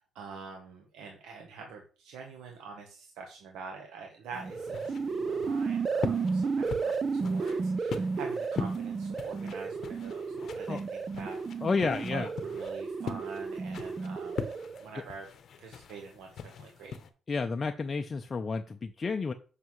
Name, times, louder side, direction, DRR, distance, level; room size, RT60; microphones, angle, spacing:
voice 1, 0.0-6.9 7.2-14.5 14.8-15.3 15.6-17.0, right 5 dB, 90° right, 1 dB, 1.1 m, -45 dB
sound 1, 4.3-17.1, left 6 dB, 65° left, 0.8 m, -42 dB
sound 2, 4.3-14.9, right 4 dB, 40° right, 0.4 m, -33 dB
voice 2, 11.6-12.3 14.9-15.0 17.3-19.3, left 4 dB, 35° left, 5 dB, 0.5 m, -31 dB
7.5 x 5.8 x 3.1 m, 0.38 s
cardioid pair, 90°, 0 cm